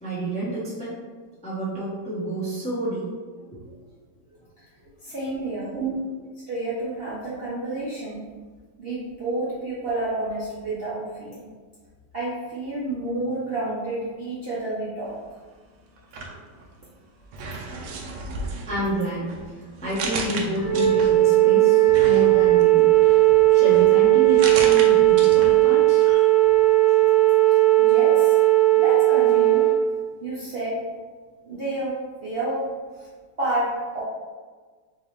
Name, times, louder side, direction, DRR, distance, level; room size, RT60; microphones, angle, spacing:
voice 1, 0.0-1.0 1.4-3.1 3.5-3.8 5.3-5.4 5.7-6.0 18.7-22.9 23.5-26.5 26.9-27.1, right 1 dB, 10° left, -8 dB, 0.5 m, -29 dB
voice 2, 5.0-5.8 6.5-8.3 8.8-11.5 12.1-15.2 27.8-28.4 28.7-29.7 30.2-30.8 31.5-32.7 33.0-33.1 33.4-34.0, right 2 dB, 55° right, -9 dB, 0.6 m, -29 dB
sound 1, 16.0-16.9 17.3-21.4 21.9-25.7 26.0-26.1, right 3 dB, 75° right, 1.1 m, -35 dB
Wind instrument woodwind instrument, 20.6-29.8, right 17 dB, 60° left, 0.9 m, -17 dB
3.7 x 2.7 x 3.1 m, 1.5 s
omnidirectional pair, 2.0 m